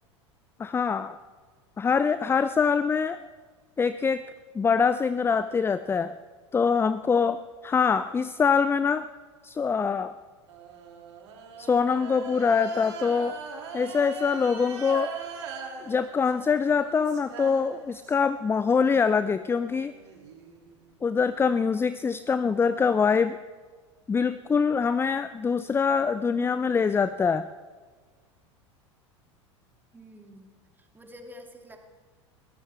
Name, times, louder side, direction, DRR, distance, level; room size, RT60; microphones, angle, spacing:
voice 1, 0.6-1.2 1.8-3.2 3.8-4.2 4.5-6.1 6.5-9.1 9.4-10.1 11.6-13.4 13.7-15.1 15.9-19.9 21.0-23.4 24.1-27.5, left 5 dB, 15° left, 13 dB, 0.5 m, -24 dB
sound 1, 10.5-18.3 18.7-21.3, right 6 dB, 65° right, 2.8 m, -41 dB
voice 2, 29.9-30.5 30.8-31.8, equal, 10° right, 3 dB, 2.6 m, -48 dB
22.0 x 16.0 x 3.5 m, 1.5 s
hypercardioid pair, 80°, 15 cm